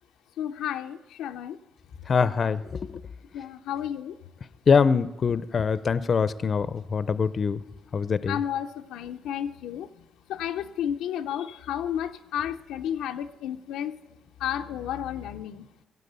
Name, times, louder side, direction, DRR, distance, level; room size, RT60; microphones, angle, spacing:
voice 1, 0.4-1.6 3.3-4.1 8.3-9.9 10.3-14.0 14.4-15.7, left 10 dB, 90° left, 6 dB, 0.5 m, -32 dB
voice 2, 2.1-3.0 4.7-7.6 7.9-8.4, left 5 dB, 45° left, 15 dB, 0.6 m, -24 dB
16.5 x 8.0 x 8.0 m, 1.0 s
cardioid pair, 90°, 0 cm